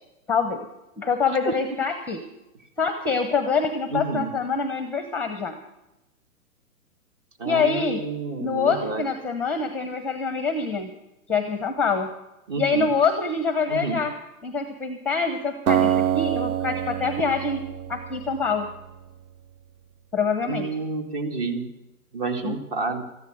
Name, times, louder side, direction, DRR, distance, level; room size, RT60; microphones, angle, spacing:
voice 1, 0.3-0.6 1.0-2.2 2.8-5.6 7.4-8.0 8.4-10.9 11.3-12.1 12.6-14.1 14.4-18.7 20.1-20.7 22.4-22.6, left 5 dB, 5° left, 8 dB, 0.8 m, -25 dB
voice 2, 3.9-4.3 7.4-9.0 12.5-12.9 13.7-14.0 20.4-21.7 22.1-23.0, right 3 dB, 40° right, 5 dB, 2.3 m, -29 dB
Acoustic guitar, 15.7-18.8, right 10 dB, 90° right, 0.6 m, -25 dB
14.0 x 10.5 x 7.8 m, 0.95 s
hypercardioid pair, 130°, 43 cm